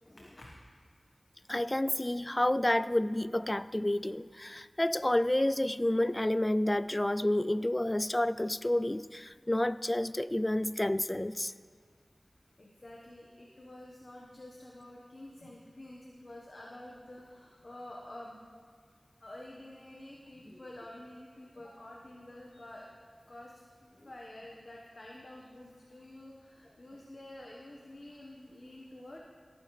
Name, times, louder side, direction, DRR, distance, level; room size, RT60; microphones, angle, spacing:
voice 1, 0.2-0.5 12.6-18.4 19.2-22.9 23.3-29.2, left 1 dB, 55° left, 1.2 m, -49 dB
voice 2, 1.5-11.5, left 1 dB, 25° left, 0.3 m, -29 dB
17.5 x 9.8 x 3.2 m
wide cardioid pair, 45°, 0 cm